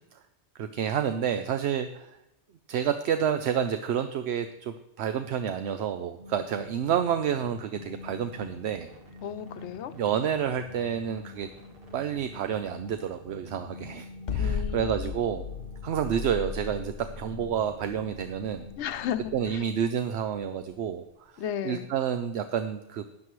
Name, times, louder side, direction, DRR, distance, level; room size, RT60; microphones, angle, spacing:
voice 1, 0.6-2.2 2.7-8.9 10.0-11.5 11.9-15.4 15.8-18.7 19.3-21.3 21.6-23.0, right 8 dB, 75° right, 9 dB, 0.9 m, -29 dB
sound 1, 6.2-19.5, left 2 dB, 55° right, 1.8 m, -47 dB
voice 2, 9.2-9.9 14.4-15.1 18.8-19.7 21.4-21.9, left 9 dB, 85° left, 11 dB, 1.0 m, -34 dB
sound 2, 14.3-20.4, left 5 dB, 50° left, 0.7 m, -35 dB
12.5 x 9.9 x 3.1 m, 0.92 s
omnidirectional pair, 1.1 m